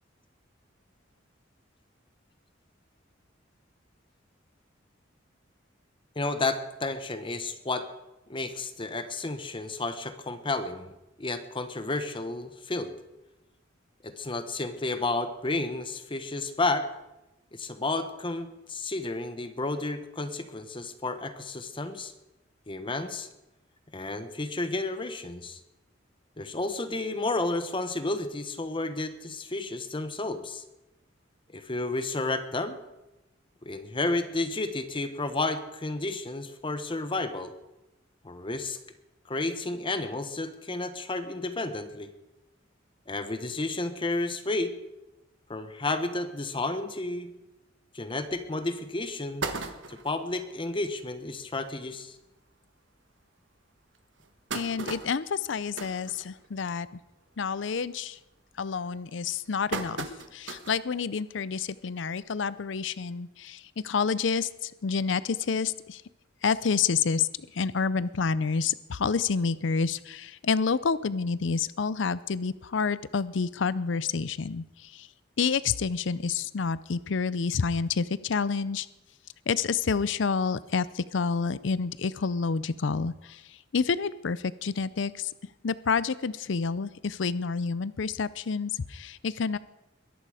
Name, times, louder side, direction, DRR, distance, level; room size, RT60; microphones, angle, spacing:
voice 1, 6.2-7.9 8.3-10.9 11.2-13.0 14.0-16.9 17.5-22.1 22.7-23.3 23.9-25.6 26.4-30.6 31.5-32.8 33.6-37.5 38.2-38.8 39.2-42.1 43.1-44.7 45.5-47.3 47.9-49.5 49.9-52.1, left 2 dB, 25° left, 9 dB, 1.0 m, -31 dB
sound 1, 48.3-48.4 48.9-49.0 49.2-50.2 50.8-50.9 51.2-51.3 51.6-51.8 52.5-52.6 53.1-53.2 53.9-56.8 57.2-57.5 57.8-58.2 58.9-60.9 61.3-61.4 62.6-62.7, right 3 dB, 70° right, 1.5 m, -37 dB
voice 2, 54.5-56.9 57.4-58.2 58.6-66.0 66.4-75.1 75.4-78.9 79.5-85.3 85.6-89.6, left 5 dB, 70° left, 17 dB, 0.5 m, -29 dB
22.0 x 11.0 x 4.9 m, 0.95 s
head